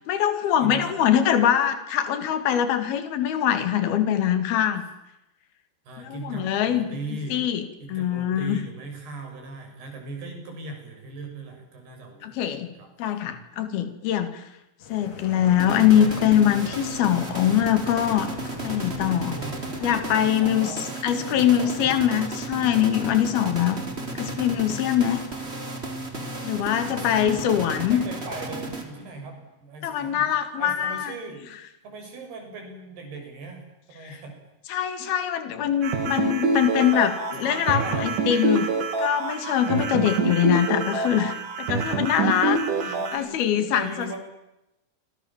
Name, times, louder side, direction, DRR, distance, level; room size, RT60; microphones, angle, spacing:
voice 1, 0.1-4.8 6.0-6.9 7.3-7.6 7.9-8.6 12.2-12.7 13.0-14.4 14.9-18.3 18.6-19.4 19.8-20.7 21.0-23.8 24.2-25.2 26.4-28.0 29.8-31.1 34.0-34.2 34.7-38.7 39.0-42.6 43.1-44.2, left 10 dB, 75° left, 9 dB, 4.0 m, -23 dB
voice 2, 0.6-0.9 5.9-7.4 7.8-12.4 12.8-12.9 17.8-17.9 19.0-19.6 20.1-20.9 21.2-22.0 26.6-30.3 30.6-31.4 31.8-34.4 36.7-37.0 37.4-38.1 42.5-44.2, right 3 dB, 90° right, 3 dB, 8.6 m, -39 dB
sound 1, 14.8-20.2, left 4 dB, 40° left, 3.3 m, -41 dB
sound 2, 15.6-29.2, right 2 dB, 15° right, 3.8 m, -34 dB
sound 3, 35.8-43.2, right 3 dB, 60° right, 4.1 m, -26 dB
29.5 x 26.0 x 7.4 m, 0.92 s
omnidirectional pair, 4.5 m